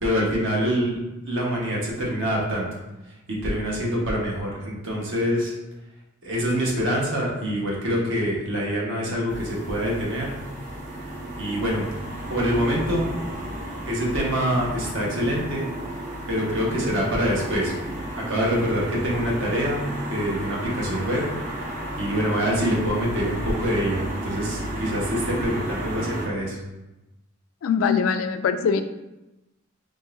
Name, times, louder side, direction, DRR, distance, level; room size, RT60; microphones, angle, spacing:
voice 1, 0.0-1.0 1.2-2.7 3.3-5.5 6.2-10.3 11.4-11.9 12.3-13.1 13.9-15.7 16.3-17.7 18.1-19.8 20.1-21.2 22.0-26.6, equal, 65° right, -3 dB, 1.2 m, -25 dB
sound 1, 9.3-26.3, right 1 dB, 40° right, 0.8 m, -33 dB
voice 2, 27.6-28.8, left 6 dB, 75° left, 9 dB, 0.3 m, -22 dB
3.9 x 3.7 x 2.6 m, 0.98 s
head